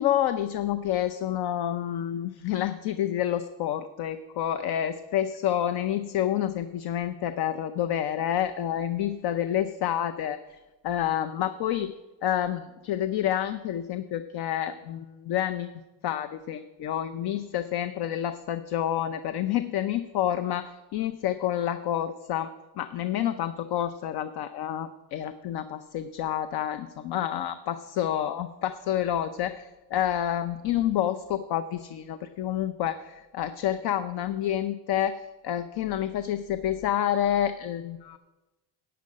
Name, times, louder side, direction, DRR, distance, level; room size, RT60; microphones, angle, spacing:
voice 1, 0.0-10.6 10.8-11.9 12.2-22.5 22.8-38.2, left 11 dB, 50° left, 11 dB, 0.6 m, -29 dB
10.5 x 5.6 x 8.6 m, 1.1 s
cardioid pair, 115°, 49 cm